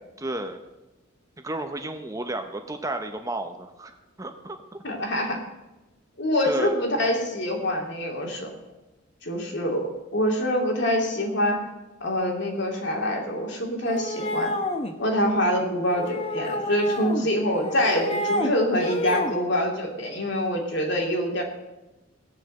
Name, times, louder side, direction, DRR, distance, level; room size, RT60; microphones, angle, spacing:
voice 1, 0.2-0.6 1.4-4.6 6.5-6.8, right 2 dB, 15° right, 6 dB, 0.8 m, -32 dB
voice 2, 4.8-5.4 6.2-8.5 9.2-11.6 12.0-14.5 15.0-21.4, equal, 55° left, 1 dB, 2.8 m, -25 dB
sound 1, 13.9-14.9 15.9-17.3 17.6-18.5 18.8-19.4, left 1 dB, 30° left, 1.1 m, -29 dB
17.5 x 6.8 x 7.8 m, 1.1 s
head